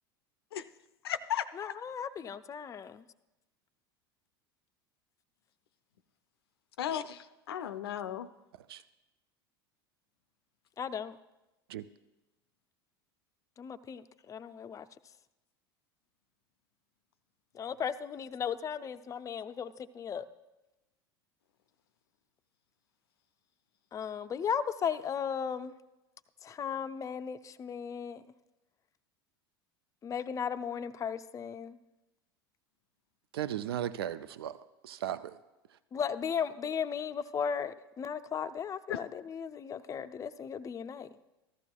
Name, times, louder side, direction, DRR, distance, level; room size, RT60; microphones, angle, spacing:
voice 1, 1.0-1.7 6.8-8.3 38.9-39.0, left 10 dB, 80° left, 12 dB, 0.5 m, -35 dB
voice 2, 1.6-3.0 10.8-11.2 13.6-14.0 14.3-14.9 17.5-20.3 23.9-25.7 26.4-28.2 30.0-31.8 35.9-41.1, left 7 dB, 25° left, 10 dB, 0.5 m, -36 dB
voice 3, 33.3-34.6 34.8-35.4, right 11 dB, 75° right, 14 dB, 0.4 m, -36 dB
14.5 x 13.5 x 2.3 m, 1.0 s
hypercardioid pair, 80°, 13 cm